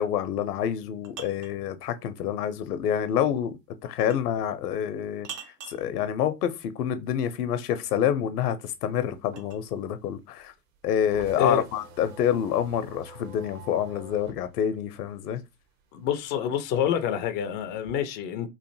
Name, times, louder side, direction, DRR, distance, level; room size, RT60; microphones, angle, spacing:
voice 1, 0.0-3.6 3.8-5.3 5.7-10.5 10.8-15.4, left 9 dB, 70° left, 0.7 m, -27 dB
sound 1, 0.6-1.6 4.0-4.3 5.2-5.9 8.1-9.7, right 8 dB, 75° right, 0.7 m, -43 dB
sound 2, 8.7-15.8 16.2-17.9, right 2 dB, 55° right, 1.0 m, -47 dB
voice 2, 15.9-18.5, left 9 dB, 25° left, 0.3 m, -27 dB
3.1 x 2.5 x 2.6 m
hypercardioid pair, 90°, 48 cm